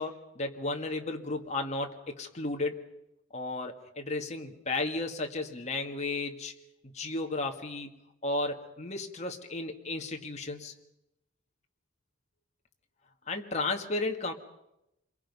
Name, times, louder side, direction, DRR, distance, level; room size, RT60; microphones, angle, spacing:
voice 1, 0.0-2.8 3.3-6.5 6.8-7.9 8.2-10.7 13.3-14.3, left 2 dB, 35° left, 3 dB, 2.0 m, -34 dB
28.0 x 23.0 x 5.6 m, 0.87 s
head